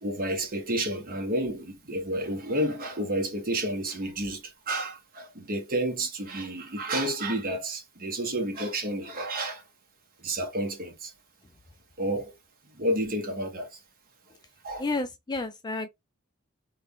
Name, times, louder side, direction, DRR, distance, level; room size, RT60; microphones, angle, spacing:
voice 1, 0.0-9.6 10.2-11.1 12.0-12.3 12.7-13.8 14.6-14.8, right 1 dB, 40° right, 1.2 m, -30 dB
voice 2, 14.8-15.9, left 2 dB, 20° left, 0.4 m, -31 dB
3.6 x 2.3 x 3.5 m
head